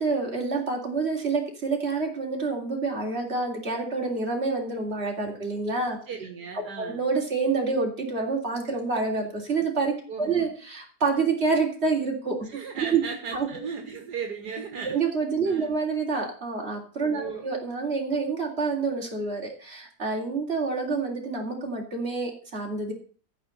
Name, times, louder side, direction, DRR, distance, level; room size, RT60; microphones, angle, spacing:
voice 1, 0.0-6.0 6.8-12.5 12.8-13.0 13.3-13.5 14.8-22.9, right 4 dB, 35° right, 0 dB, 3.4 m, -27 dB
voice 2, 6.1-7.0 10.1-10.5 12.4-15.1 15.5-15.8 17.1-17.5, right 5 dB, 70° right, 4 dB, 2.1 m, -36 dB
14.0 x 5.2 x 7.9 m, 0.42 s
omnidirectional pair, 1.8 m